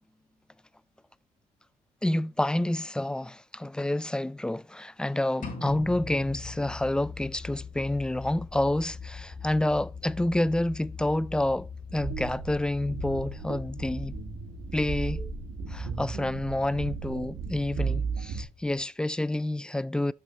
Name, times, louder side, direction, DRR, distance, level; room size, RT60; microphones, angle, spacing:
voice 1, 2.0-14.2 14.7-15.2 15.7-20.1, left 1 dB, 5° left, 0.3 m, -28 dB
sound 1, 5.4-7.4, left 1 dB, 55° left, 4.7 m, -41 dB
sound 2, 5.7-18.8, left 5 dB, 35° left, 1.9 m, -43 dB
sound 3, 11.9-18.4, right 4 dB, 90° right, 2.6 m, -35 dB
8.0 x 6.4 x 4.0 m
cardioid pair, 85°, 17 cm